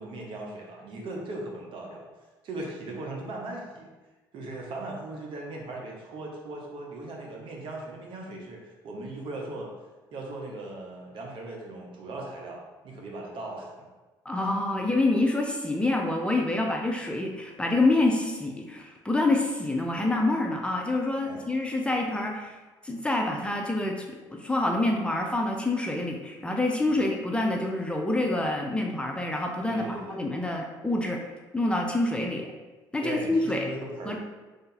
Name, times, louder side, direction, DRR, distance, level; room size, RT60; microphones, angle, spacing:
voice 1, 0.0-2.0 2.4-3.9 4.3-9.7 10.1-13.9 21.3-21.4 26.9-27.1 29.7-30.2 33.0-34.2, right 2 dB, 60° right, -1 dB, 1.0 m, -38 dB
voice 2, 14.3-22.6 22.8-31.2 31.5-32.5 32.9-33.7 34.1-34.2, left 2 dB, 10° left, 1 dB, 0.6 m, -27 dB
3.4 x 2.7 x 4.0 m, 1.2 s
hypercardioid pair, 65°, 10 cm